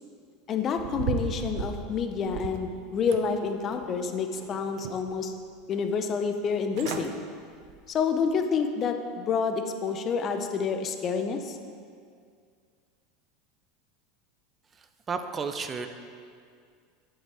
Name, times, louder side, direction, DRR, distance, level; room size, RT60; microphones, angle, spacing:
voice 1, 0.5-5.3 5.7-7.2 7.9-11.6, left 5 dB, 40° left, 6 dB, 0.7 m, -28 dB
sound 1, 0.7-2.7 3.1-3.9 4.3-5.2 5.6-5.7 6.4-6.5 6.7-7.1 7.5-7.8 8.3-8.4, right 7 dB, 65° right, 0.6 m, -36 dB
voice 2, 15.1-15.9, right 5 dB, 30° right, 8 dB, 0.6 m, -31 dB
7.7 x 6.8 x 4.9 m, 2.2 s
supercardioid pair, 105°, 0 cm